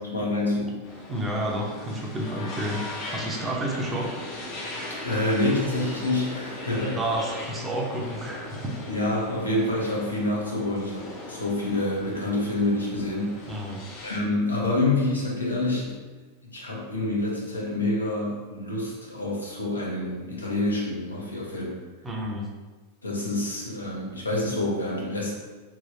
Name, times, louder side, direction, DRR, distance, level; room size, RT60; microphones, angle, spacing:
voice 1, 0.0-0.8 5.0-7.0 8.9-13.4 14.0-16.0 16.5-21.8 23.0-25.3, left 2 dB, 80° left, -4 dB, 0.7 m, -27 dB
sound 1, 0.8-14.2, left 2 dB, 40° left, 0.6 m, -38 dB
voice 2, 1.1-2.8 3.1-4.1 7.0-8.7 13.5-13.8 22.0-22.5, right 1 dB, 15° right, -2 dB, 0.6 m, -30 dB
3.0 x 2.8 x 2.5 m, 1.3 s
figure-of-eight pair, 90°, 0 cm